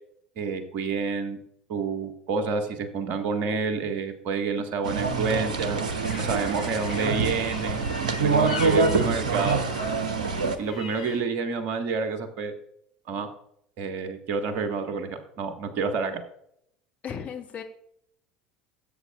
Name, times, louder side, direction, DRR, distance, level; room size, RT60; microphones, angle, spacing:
voice 1, 0.4-1.4 1.7-5.8 6.2-7.8 8.2-9.6 10.6-12.5 13.1-13.3 13.8-16.2, right 4 dB, 50° right, 7 dB, 1.5 m, -29 dB
sound 1, 4.8-10.6, right 4 dB, 75° right, 0.9 m, -25 dB
sound 2, 5.8-11.2, left 4 dB, 70° left, 1.9 m, -41 dB
voice 2, 17.0-17.6, left 7 dB, 35° left, 2 dB, 1.7 m, -35 dB
16.0 x 8.1 x 2.4 m, 0.70 s
figure-of-eight pair, 70°, 4 cm